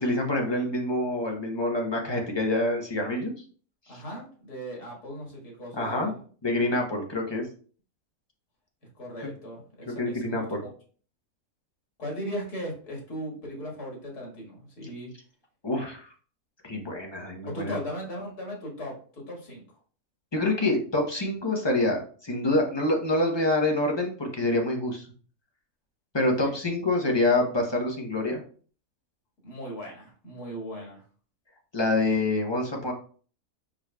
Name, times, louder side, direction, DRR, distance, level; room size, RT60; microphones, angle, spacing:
voice 1, 0.0-3.3 3.9-4.0 5.7-6.1 6.4-7.5 9.8-10.6 15.6-16.1 16.6-17.8 20.3-25.1 26.1-28.4 31.7-32.9, left 2 dB, 25° left, 0 dB, 0.6 m, -26 dB
voice 2, 3.9-6.2 9.0-10.4 12.0-15.1 17.4-19.6 26.2-26.5 29.4-31.0, equal, 85° left, -2 dB, 2.2 m, -38 dB
4.9 x 4.8 x 2.3 m, 0.43 s
omnidirectional pair, 1.6 m